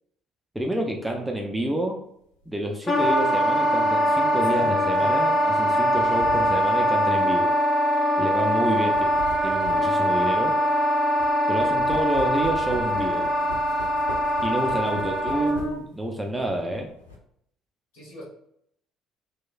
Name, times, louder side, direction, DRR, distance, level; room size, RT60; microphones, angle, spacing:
voice 1, 0.5-2.0 2.5-7.5 8.2-9.1 9.4-10.6 11.5-13.3 14.4-16.9, right 1 dB, 5° right, 1 dB, 0.4 m, -28 dB
sound 1, 2.4-2.6 3.9-6.8 7.5-7.6 8.7-11.3 11.6-15.9 16.3-17.2, left 2 dB, 85° left, 0.4 m, -40 dB
Wind instrument woodwind instrument, 2.9-15.8, equal, 35° left, 0.6 m, -22 dB
voice 2, 8.6-9.0 15.0-15.6 17.9-18.2, equal, 65° left, -7 dB, 1.4 m, -42 dB
3.0 x 2.1 x 2.4 m, 0.71 s
figure-of-eight pair, 50°, 0 cm